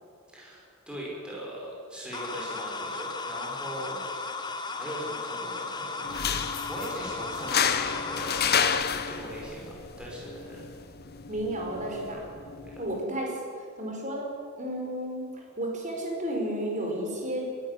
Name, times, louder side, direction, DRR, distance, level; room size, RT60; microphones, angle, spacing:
voice 1, 0.3-4.3 4.7-8.6 8.8-10.7 12.6-12.8, equal, 5° right, -5 dB, 5.8 m, -40 dB
sound 1, 2.1-8.8, left 3 dB, 20° left, 1.3 m, -35 dB
sound 2, 6.0-13.0, left 7 dB, 45° left, 1.0 m, -31 dB
voice 2, 11.3-12.2 12.8-14.3 14.6-17.5, right 1 dB, 35° right, 0 dB, 4.9 m, -32 dB
22.5 x 13.0 x 9.9 m, 2.2 s
head